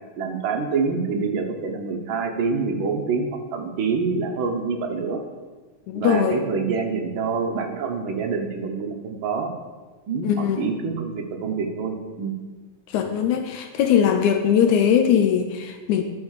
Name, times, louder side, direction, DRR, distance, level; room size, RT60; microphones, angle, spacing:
voice 1, 0.2-5.2 5.9-9.5 10.1-12.4, right 5 dB, 75° right, 2 dB, 1.1 m, -26 dB
voice 2, 5.9-6.4 10.2-10.7 12.9-16.0, left 8 dB, 75° left, 6 dB, 1.9 m, -20 dB
11.0 x 5.9 x 6.5 m, 1.3 s
omnidirectional pair, 3.8 m